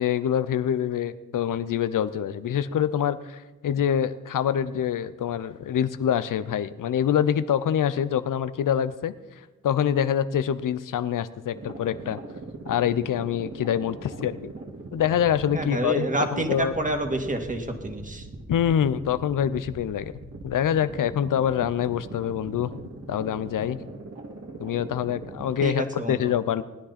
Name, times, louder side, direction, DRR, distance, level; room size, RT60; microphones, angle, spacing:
voice 1, 0.0-9.1 9.6-12.2 12.7-14.5 14.9-16.7 18.5-20.1 20.4-22.7 23.1-23.8 24.6-26.6, left 9 dB, 75° left, 13 dB, 0.7 m, -25 dB
sound 1, 11.5-25.7, right 2 dB, 50° right, 2.2 m, -41 dB
voice 2, 15.5-18.3 25.6-26.3, right 1 dB, 25° right, 4 dB, 2.3 m, -28 dB
19.0 x 9.9 x 4.3 m, 1.2 s
supercardioid pair, 45°, 32 cm